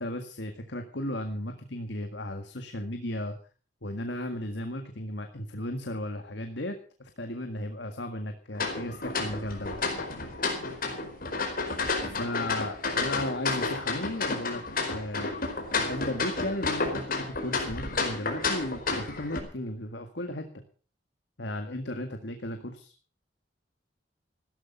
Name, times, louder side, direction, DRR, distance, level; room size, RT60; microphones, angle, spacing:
voice 1, 0.0-3.4 3.8-9.8 12.2-14.6 14.9-15.4 15.7-20.5 21.4-22.9, left 1 dB, 70° left, 6 dB, 1.9 m, -35 dB
sound 1, 8.6-19.4, left 3 dB, 50° left, 4.8 m, -31 dB
16.5 x 13.0 x 5.6 m, 0.40 s
head